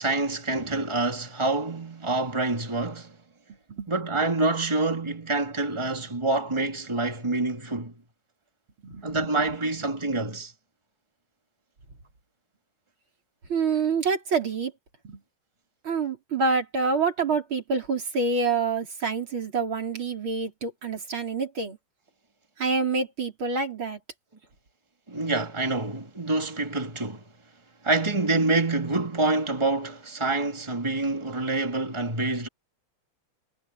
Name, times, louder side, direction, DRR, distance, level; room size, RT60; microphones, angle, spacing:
voice 1, 0.0-3.2 3.9-7.9 9.0-10.5 25.1-27.2 27.8-32.5, right 2 dB, 15° right, 2.6 m, -26 dB
voice 2, 8.8-9.3 13.5-14.7 15.0-15.2 15.8-21.8 22.6-24.0, right 4 dB, 80° right, 5.4 m, -27 dB
omnidirectional pair, 2.2 m